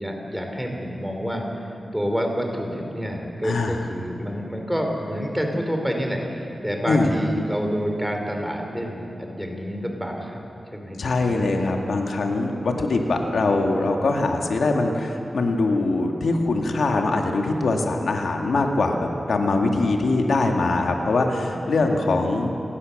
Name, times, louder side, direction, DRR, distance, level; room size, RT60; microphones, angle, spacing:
voice 1, 0.0-1.7 1.9-10.4 10.7-11.0 11.2-11.4 21.4-22.0, equal, ahead, 2 dB, 3.6 m, -28 dB
voice 2, 3.4-3.8 6.9-7.1 11.0-22.5, left 3 dB, 85° left, 2 dB, 2.1 m, -22 dB
28.0 x 19.5 x 6.6 m, 2.9 s
wide cardioid pair, 115°, 0 cm